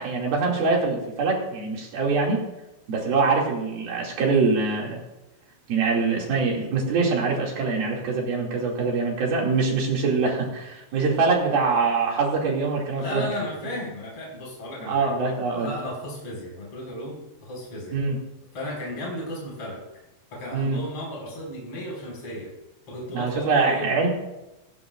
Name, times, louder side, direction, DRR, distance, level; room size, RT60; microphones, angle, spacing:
voice 1, 0.0-2.4 2.9-5.0 5.7-13.3 14.9-15.7 17.9-18.2 20.5-20.8 23.1-24.1, right 4 dB, 55° right, -2 dB, 4.0 m, -24 dB
voice 2, 13.0-15.1 15.5-18.0 18.5-19.8 20.3-22.5 22.9-23.9, left 1 dB, 30° left, -3 dB, 6.3 m, -34 dB
17.5 x 17.0 x 2.6 m, 0.98 s
omnidirectional pair, 5.7 m